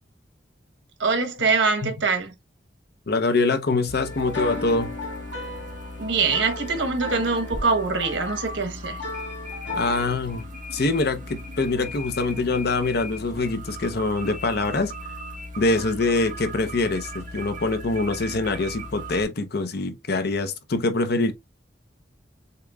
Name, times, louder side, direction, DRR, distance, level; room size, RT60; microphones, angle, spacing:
voice 1, 1.0-2.3 6.0-9.0, right 4 dB, 90° right, 1.2 m, -23 dB
voice 2, 3.1-4.9 9.7-10.4 10.7-14.9 15.6-21.3, left 3 dB, 60° left, 0.8 m, -24 dB
sound 1, 3.9-19.2, equal, 45° right, 1.2 m, -37 dB
sound 2, 4.0-10.1, left 2 dB, 85° left, 1.6 m, -35 dB
6.7 x 3.0 x 2.4 m
head